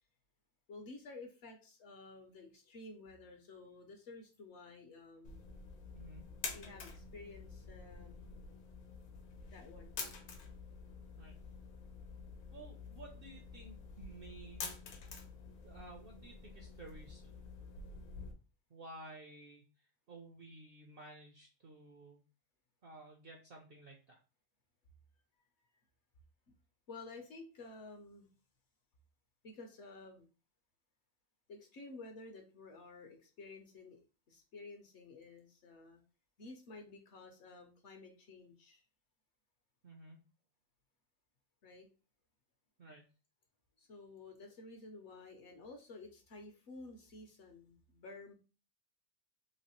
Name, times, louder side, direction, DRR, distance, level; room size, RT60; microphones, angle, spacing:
voice 1, 0.7-5.5 6.5-8.4 9.5-10.0 26.9-28.3 29.4-30.3 31.5-34.0 34.3-36.0 36.4-38.8 41.6-41.9 43.8-48.3, left 3 dB, 65° left, 4 dB, 0.8 m, -52 dB
sound 1, 5.2-18.3, left 4 dB, 85° left, 1.2 m, -48 dB
voice 2, 5.9-6.3 11.2-11.3 12.5-14.8 15.6-17.2 18.7-22.2 22.8-24.2 39.8-40.2 42.8-43.1, right 2 dB, 65° right, 1 dB, 0.5 m, -54 dB
3.1 x 2.8 x 2.9 m, 0.34 s
omnidirectional pair, 1.5 m